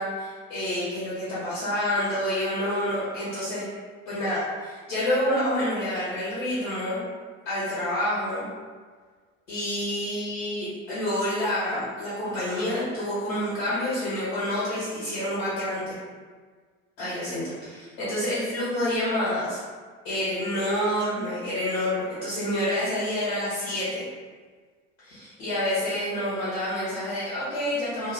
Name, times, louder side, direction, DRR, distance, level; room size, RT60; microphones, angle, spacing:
voice 1, 0.0-3.7 4.1-7.0 7.4-8.5 9.5-16.0 17.0-19.6 20.0-24.1 25.0-28.1, left 1 dB, 70° left, -11 dB, 1.2 m, -28 dB
2.6 x 2.2 x 3.7 m, 1.5 s
figure-of-eight pair, 55°, 40 cm